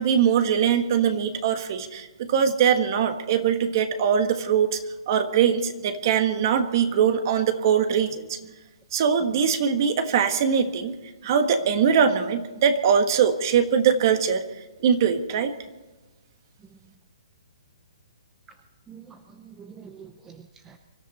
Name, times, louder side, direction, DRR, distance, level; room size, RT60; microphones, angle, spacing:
voice 1, 0.0-4.8 5.1-8.4 8.9-10.9 11.2-14.4 14.8-15.5, right 7 dB, 35° right, 8 dB, 1.5 m, -22 dB
voice 2, 16.6-16.9 18.5-18.6 18.9-20.8, right 7 dB, 10° right, 7 dB, 0.7 m, -47 dB
24.5 x 13.5 x 4.2 m, 1.2 s
hypercardioid pair, 165°, 3 cm